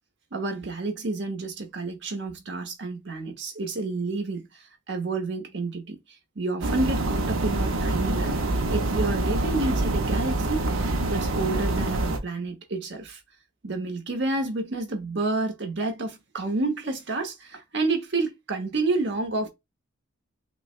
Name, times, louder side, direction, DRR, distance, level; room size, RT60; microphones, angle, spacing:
voice 1, 0.3-6.0 6.3-8.4 8.7-10.7 11.1-13.2 13.6-19.5, right 3 dB, 60° right, 1.1 m, -29 dB
sound 1, 6.6-12.2, right 2 dB, 85° right, 0.8 m, -26 dB
5.9 x 2.2 x 2.5 m
head